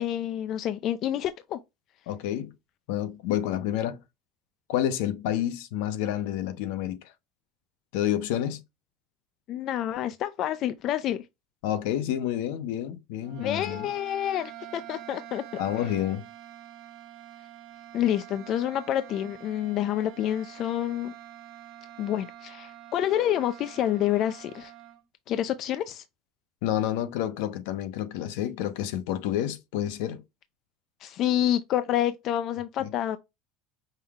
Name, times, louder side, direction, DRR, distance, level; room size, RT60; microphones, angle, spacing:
voice 1, 0.0-1.6 9.5-11.3 13.4-15.9 17.9-21.1 22.0-24.7 25.3-26.0 31.0-33.2, left 11 dB, 40° left, 0.3 m, -28 dB
voice 2, 2.1-2.5 2.9-4.0 4.7-7.0 7.9-8.6 11.6-13.9 15.6-16.3 26.6-30.2 32.8-32.9, left 11 dB, 75° left, 0.7 m, -29 dB
sound 1, 13.2-25.0, right 12 dB, 60° right, 1.2 m, -46 dB
5.4 x 2.2 x 3.5 m
cardioid pair, 150°, 0 cm